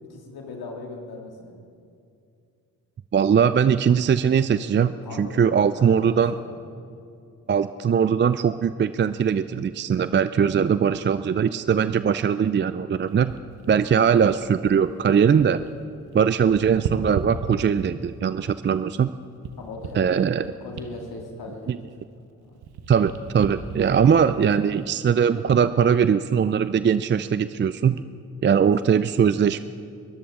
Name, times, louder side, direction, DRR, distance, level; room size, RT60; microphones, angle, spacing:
voice 1, 0.1-1.5 5.0-6.8 19.6-20.1 20.4-21.8 22.4-22.6, left 2 dB, 65° left, 0 dB, 2.4 m, -39 dB
voice 2, 3.1-6.3 7.5-13.3 13.7-15.6 16.1-19.1 19.9-20.5 21.7-21.8 22.9-28.0 28.4-29.6, right 7 dB, 30° right, 13 dB, 0.4 m, -21 dB
sound 1, 13.0-15.7 16.0-18.1 18.7-22.2 22.5-25.3 25.9-26.1, right 6 dB, 70° right, 1.1 m, -37 dB
22.0 x 13.5 x 3.7 m, 2.5 s
supercardioid pair, 45°, 40 cm